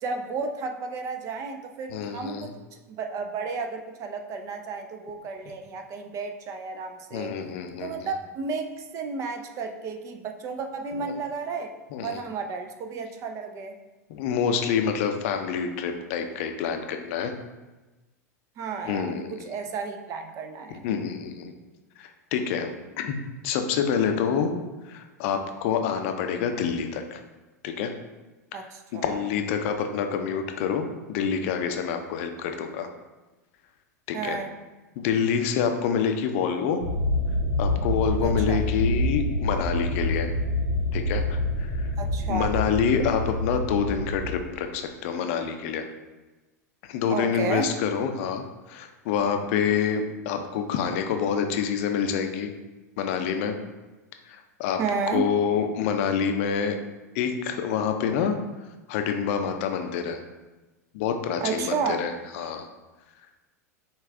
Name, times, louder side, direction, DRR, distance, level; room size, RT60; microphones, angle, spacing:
voice 1, 0.0-7.3 7.8-11.7 12.0-13.8 18.6-20.8 28.5-29.2 34.1-34.5 38.2-38.6 42.0-42.6 47.1-47.8 54.8-55.3 61.4-62.0, right 5 dB, 35° right, 6 dB, 0.5 m, -32 dB
voice 2, 1.9-2.5 7.1-7.9 10.9-11.1 11.9-12.2 14.1-17.3 18.8-19.3 20.7-21.5 22.0-22.7 23.0-23.2 23.4-24.5 24.8-27.2 27.6-27.9 28.5-28.6 28.9-32.9 34.1-34.4 35.0-36.8 37.6-40.3 40.9-41.9 42.3-45.8 46.8-52.5 53.0-53.6 54.3-54.8 55.1-56.7 57.1-58.4 58.9-60.2 60.9-62.7, left 7 dB, 50° left, 6 dB, 0.5 m, -27 dB
sound 1, 36.8-44.3, left 1 dB, 75° right, 1.2 m, -27 dB
5.3 x 2.4 x 3.4 m, 1.1 s
figure-of-eight pair, 90°, 9 cm